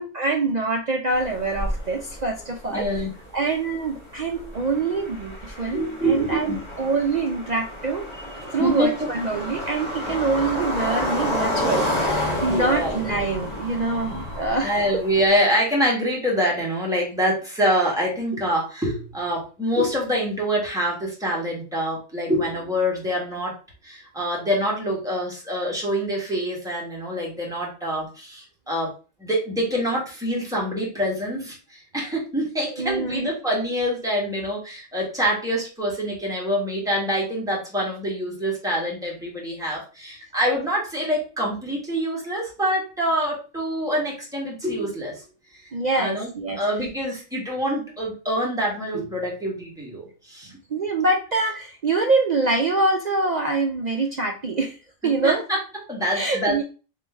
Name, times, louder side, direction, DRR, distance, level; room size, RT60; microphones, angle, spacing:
voice 1, 0.0-2.9 3.3-15.0 32.8-33.3 45.7-46.6 50.7-54.8 55.0-55.5 56.1-56.6, right 3 dB, 65° right, 2 dB, 0.4 m, -25 dB
sound 1, 1.1-15.4, equal, 20° left, 1.5 m, -30 dB
voice 2, 2.7-3.1 5.7-6.6 8.6-8.9 12.5-12.9 14.6-23.5 23.8-28.9 29.2-45.2 45.5-45.6 45.9-50.5 55.2-55.6 55.9-56.6, equal, 5° right, -4 dB, 1.5 m, -25 dB
3.8 x 3.2 x 3.4 m, 0.35 s
omnidirectional pair, 1.4 m